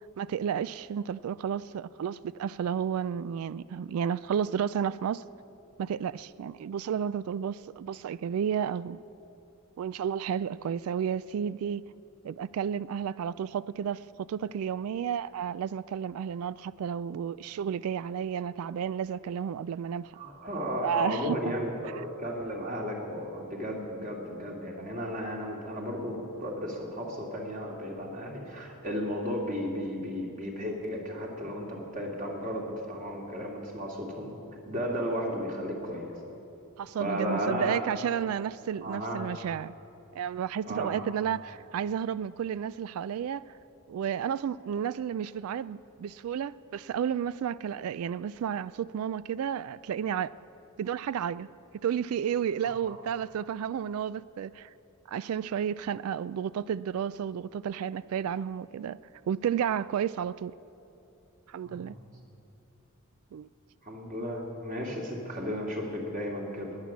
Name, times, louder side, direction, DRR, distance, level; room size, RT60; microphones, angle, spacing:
voice 1, 0.2-5.2 5.8-9.0 9.8-11.8 12.2-20.2 20.8-21.4 36.8-39.7 40.1-43.4 43.9-50.3 50.8-51.5 51.8-54.7 55.1-59.0 59.3-60.5 61.5-62.0 63.3-63.5, right 8 dB, 75° right, 0.3 m, -32 dB
voice 2, 20.1-34.3 34.7-36.1 37.0-37.8 38.8-39.2 40.7-41.1 52.6-53.0 61.6-62.0 63.8-66.8, equal, 40° right, 2.5 m, -34 dB
19.5 x 9.7 x 7.3 m
head